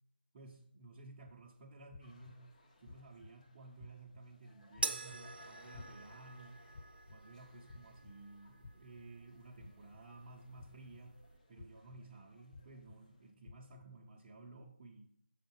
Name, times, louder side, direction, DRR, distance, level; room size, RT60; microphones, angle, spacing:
voice 1, 0.3-2.5 2.8-6.6 7.1-11.2 11.5-15.1, right 2 dB, 25° right, -3 dB, 0.7 m, -55 dB
sound 1, 1.2-1.3 1.9-2.3 2.8-3.3 3.8-4.2 4.7-5.2 5.7-6.2 6.7-7.2 7.7-8.1 8.6-9.0 9.6-10.0 10.6-11.0 11.6-12.0 12.5-13.0 13.4-13.8, left 4 dB, 25° left, 0.4 m, -53 dB
sound 2, 2.0-13.3, left 2 dB, 40° left, 1.2 m, -66 dB
sound 3, 4.8-11.4, right 4 dB, 65° right, 0.6 m, -46 dB
6.4 x 5.0 x 4.4 m, 0.67 s
figure-of-eight pair, 160°, 6 cm